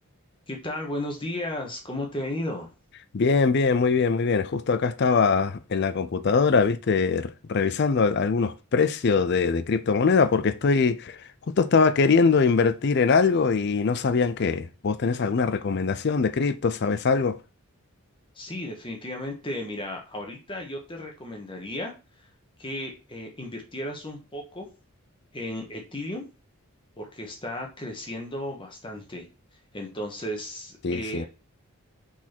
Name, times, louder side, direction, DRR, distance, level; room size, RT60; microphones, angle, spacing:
voice 1, 0.5-2.7 18.3-21.9 22.6-24.7 25.3-26.2 27.0-29.3 29.7-31.3, left 1 dB, 20° left, 1.4 m, -34 dB
voice 2, 3.1-11.2 11.6-17.4 30.8-31.3, left 5 dB, 50° left, 0.4 m, -22 dB
6.0 x 4.2 x 4.4 m
head